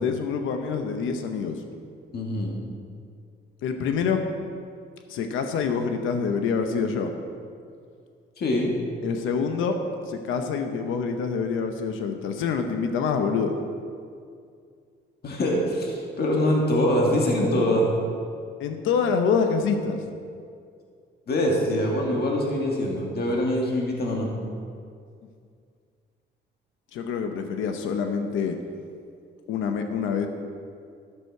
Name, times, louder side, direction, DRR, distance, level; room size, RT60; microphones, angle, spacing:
voice 1, 0.0-1.6 3.6-4.2 5.1-7.1 9.0-9.8 10.1-13.6 18.6-20.0 26.9-28.6 29.5-30.3, left 6 dB, 85° left, 6 dB, 0.8 m, -26 dB
voice 2, 2.1-2.5 8.4-8.7 15.2-17.9 21.3-24.3, left 1 dB, 55° left, -1 dB, 1.7 m, -24 dB
12.5 x 6.4 x 4.6 m, 2.3 s
cardioid pair, 90°, 20 cm